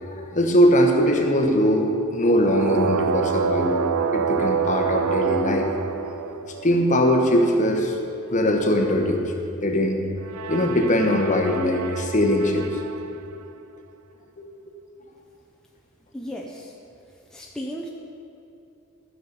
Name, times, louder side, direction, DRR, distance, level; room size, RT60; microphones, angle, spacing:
voice 1, 0.0-3.8 4.1-6.0 6.3-8.0 8.3-9.3 9.6-10.0 10.5-12.7 14.4-14.5, equal, 35° left, 2 dB, 1.1 m, -21 dB
sound 1, 2.2-6.9 10.2-13.1, right 7 dB, 85° right, 0.4 m, -27 dB
voice 2, 16.1-16.7 17.3-17.9, equal, 5° left, -2 dB, 0.6 m, -34 dB
12.5 x 6.6 x 5.4 m, 2.7 s
head